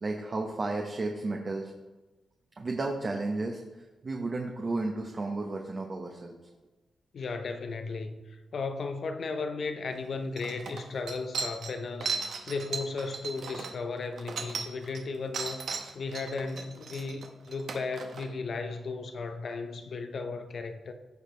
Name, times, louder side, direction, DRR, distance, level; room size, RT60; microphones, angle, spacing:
voice 1, 0.0-1.7 2.6-6.3 12.3-12.6, right 2 dB, 40° right, 1.0 m, -33 dB
voice 2, 7.1-12.2 12.5-15.6 15.9-20.9, left 4 dB, 60° left, 0.8 m, -35 dB
sound 1, 9.9-10.0 10.4-15.0 15.3-18.3, right 5 dB, 75° right, 1.0 m, -36 dB
14.5 x 5.0 x 3.3 m
cardioid pair, 75°, 0 cm